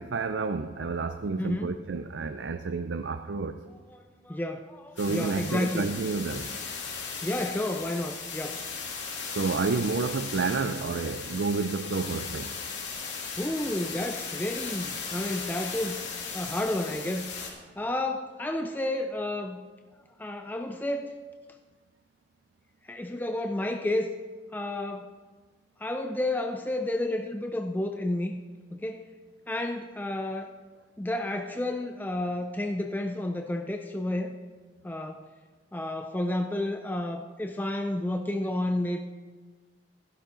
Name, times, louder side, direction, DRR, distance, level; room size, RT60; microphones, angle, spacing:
voice 1, 0.0-3.6 5.0-6.5 9.3-12.5, right 4 dB, 75° right, 8 dB, 0.5 m, -30 dB
voice 2, 1.4-1.8 3.9-5.9 7.2-8.6 13.4-16.1 16.3-17.2 17.8-19.6 20.2-21.1 22.9-24.2 24.5-25.1 25.8-28.4 28.7-29.1 29.5-30.5 31.0-34.3 34.8-35.2 35.7-39.0, left 1 dB, 10° left, 5 dB, 0.4 m, -31 dB
sound 1, 5.0-17.5, left 5 dB, 75° left, 2.8 m, -37 dB
15.0 x 11.0 x 3.8 m, 1.4 s
head